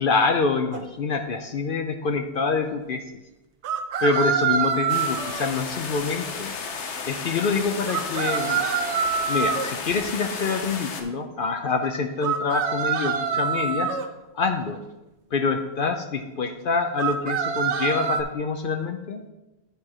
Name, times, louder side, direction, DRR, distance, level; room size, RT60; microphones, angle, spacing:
voice 1, 0.0-3.0 4.0-6.5 7.1-8.6 9.3-13.9 14.3-14.8 15.3-19.2, left 4 dB, 60° left, 6 dB, 0.7 m, -26 dB
sound 1, 0.7-0.8 3.6-5.5 7.9-9.7 12.2-14.1 17.0-18.2, right 6 dB, 85° right, 1.0 m, -25 dB
sound 2, 4.9-11.0, left 5 dB, 85° left, 1.2 m, -33 dB
9.7 x 4.5 x 4.9 m, 1.0 s
omnidirectional pair, 1.1 m